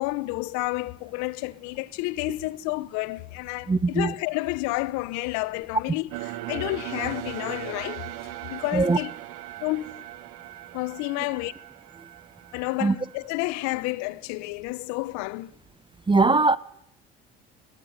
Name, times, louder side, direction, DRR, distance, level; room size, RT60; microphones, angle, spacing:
voice 1, 0.0-8.1 8.5-9.1 9.6-10.0 10.7-11.5 12.5-15.5, left 21 dB, 65° left, 1.3 m, -30 dB
voice 2, 3.7-4.1 8.7-9.0 12.8-12.9 16.1-16.6, right 3 dB, 15° right, 1.0 m, -20 dB
sound 1, 6.1-13.3, right 16 dB, 70° right, 2.2 m, -39 dB
26.0 x 18.5 x 9.8 m
hypercardioid pair, 65°, 30 cm